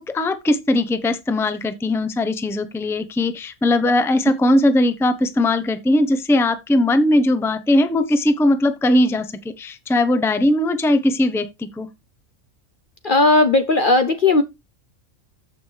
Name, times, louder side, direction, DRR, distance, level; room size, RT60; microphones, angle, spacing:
voice 1, 0.0-9.3 9.6-11.9, left 1 dB, ahead, 0.6 m, -19 dB
voice 2, 13.0-14.4, left 3 dB, 45° left, 0.8 m, -16 dB
14.0 x 6.0 x 3.4 m
omnidirectional pair, 1.5 m